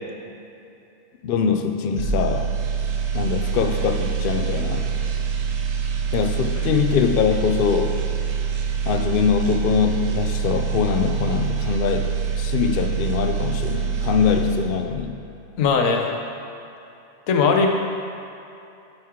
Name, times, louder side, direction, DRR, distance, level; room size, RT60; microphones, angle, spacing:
voice 1, 1.2-2.5 3.1-4.9 6.1-7.9 8.9-15.1, left 7 dB, 60° left, 5 dB, 0.6 m, -23 dB
sound 1, 2.0-15.1 15.4-15.6, right 7 dB, 80° right, 1.0 m, -25 dB
voice 2, 15.6-16.1 17.3-17.7, left 5 dB, 85° left, 2 dB, 1.1 m, -18 dB
9.5 x 4.6 x 3.6 m, 2.8 s
omnidirectional pair, 1.3 m